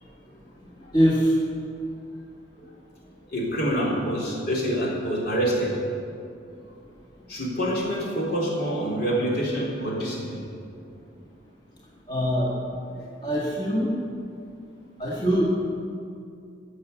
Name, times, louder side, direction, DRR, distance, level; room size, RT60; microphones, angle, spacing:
voice 1, 0.9-1.3 5.0-5.1 12.1-12.5 13.2-13.9 15.0-15.6, equal, 25° left, -6 dB, 1.8 m, -22 dB
voice 2, 3.3-5.7 7.3-10.4 13.0-13.1, equal, 60° left, -4 dB, 3.9 m, -26 dB
16.0 x 7.1 x 8.4 m, 2.5 s
head